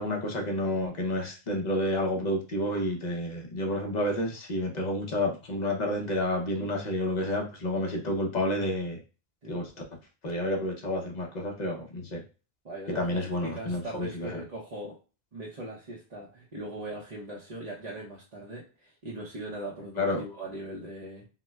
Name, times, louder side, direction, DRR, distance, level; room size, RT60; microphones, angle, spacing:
voice 1, 0.0-9.0 9.5-9.7 10.2-12.2 12.9-14.4 20.0-20.2, left 1 dB, 45° left, 1 dB, 0.8 m, -30 dB
voice 2, 12.6-15.0 15.3-21.2, right 1 dB, 40° right, -5 dB, 0.8 m, -40 dB
5.8 x 2.1 x 2.3 m, 0.35 s
omnidirectional pair, 1.1 m